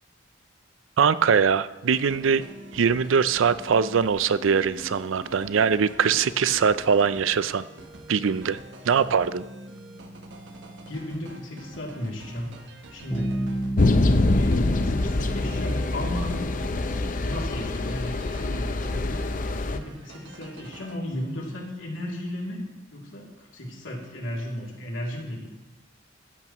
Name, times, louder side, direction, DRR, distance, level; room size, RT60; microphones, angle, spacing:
voice 1, 1.0-2.4 2.7-7.6 8.1-8.6 8.9-9.4, right 6 dB, 90° right, 15 dB, 0.5 m, -22 dB
sound 1, 1.9-21.0, right 1 dB, 65° right, 1.1 m, -46 dB
voice 2, 10.9-12.6 12.9-13.4 14.2-16.4 17.2-19.2 19.6-22.6 22.9-25.5, left 1 dB, 85° left, -2 dB, 2.8 m, -34 dB
Bass guitar, 13.1-16.8, right 1 dB, 15° left, 4.5 m, -32 dB
sound 2, 13.8-19.8, left 2 dB, 45° left, 0.6 m, -24 dB
15.0 x 12.0 x 3.0 m, 1.1 s
head